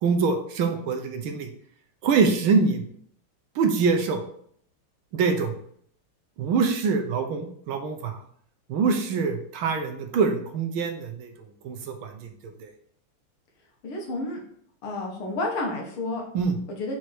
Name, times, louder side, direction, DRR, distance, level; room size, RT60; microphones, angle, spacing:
voice 1, 0.0-1.5 2.0-2.8 3.5-4.2 5.1-5.5 6.4-8.2 8.7-11.3 11.6-12.1 12.6-12.7 16.3-16.6, right 5 dB, 75° right, 5 dB, 1.6 m, -24 dB
voice 2, 13.8-14.4 14.8-16.2 16.7-17.0, left 2 dB, 80° left, 0 dB, 2.3 m, -30 dB
5.6 x 4.8 x 4.5 m, 0.63 s
omnidirectional pair, 2.3 m